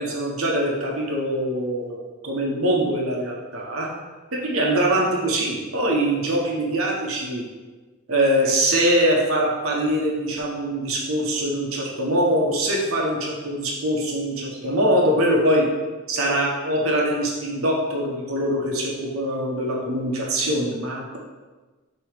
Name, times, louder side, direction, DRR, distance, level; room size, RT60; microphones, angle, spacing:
voice 1, 0.0-2.0 2.2-3.9 4.3-7.4 8.1-15.7 16.1-21.2, right 1 dB, 80° right, -2 dB, 1.2 m, -23 dB
6.4 x 3.1 x 5.1 m, 1.3 s
head